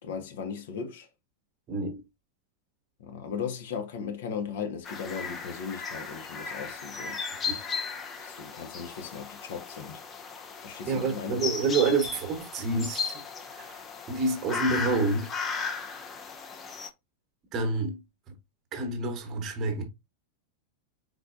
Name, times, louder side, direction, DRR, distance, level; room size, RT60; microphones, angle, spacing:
voice 1, 0.0-1.1 3.0-7.2 8.2-10.0 10.6-11.4, left 6 dB, 55° left, 1.0 m, -37 dB
voice 2, 1.7-2.0 7.5-7.6 10.9-13.8 14.1-15.3 17.5-18.0 18.7-19.8, right 3 dB, 30° right, 1.2 m, -28 dB
sound 1, 4.8-16.9, left 5 dB, 25° left, 0.7 m, -36 dB
4.5 x 4.0 x 2.5 m
figure-of-eight pair, 90°, 0 cm